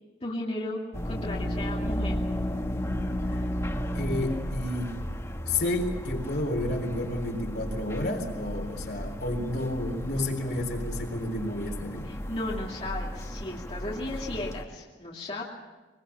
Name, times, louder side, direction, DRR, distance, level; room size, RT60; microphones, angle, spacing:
voice 1, 0.2-2.2 12.1-15.4, left 1 dB, 35° left, -4 dB, 2.7 m, -35 dB
sound 1, 0.9-14.6, equal, 15° left, 1.4 m, -34 dB
voice 2, 3.9-4.9 5.4-12.1, left 1 dB, 65° left, 2 dB, 3.9 m, -31 dB
22.5 x 22.0 x 7.2 m, 1.2 s
head